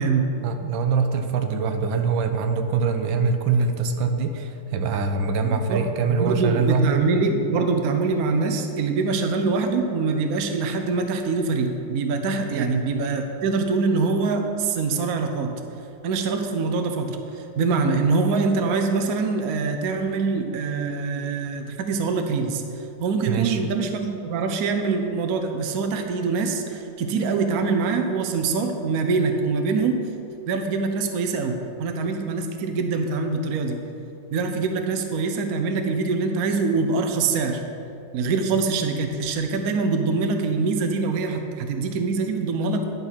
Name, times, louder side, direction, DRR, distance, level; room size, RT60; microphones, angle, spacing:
voice 1, 0.4-7.0 12.5-12.7 23.3-23.6, right 5 dB, 85° right, 6 dB, 1.5 m, -24 dB
voice 2, 5.4-5.8 6.1-15.5 16.0-22.6 23.0-30.0 30.5-33.8 34.3-37.6 38.1-42.8, right 4 dB, 60° right, 5 dB, 1.1 m, -24 dB
10.5 x 5.4 x 5.8 m, 2.7 s
omnidirectional pair, 2.1 m